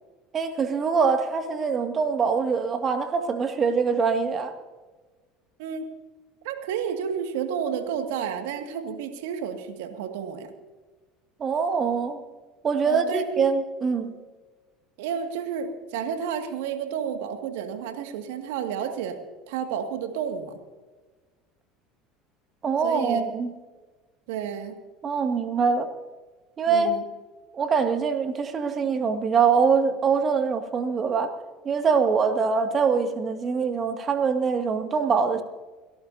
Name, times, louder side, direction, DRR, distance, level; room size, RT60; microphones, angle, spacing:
voice 1, 0.3-4.5 11.4-12.2 12.6-14.1 22.6-23.5 25.0-25.9 26.6-26.9 27.5-31.3 31.6-35.4, right 5 dB, 35° right, 6 dB, 2.2 m, -24 dB
voice 2, 6.4-10.5 12.8-13.4 15.0-19.2 19.5-20.5 22.8-23.2 24.3-24.8 26.7-27.0, right 7 dB, 70° right, 6 dB, 2.1 m, -31 dB
30.0 x 14.0 x 2.8 m, 1.3 s
hypercardioid pair, 75°, 0 cm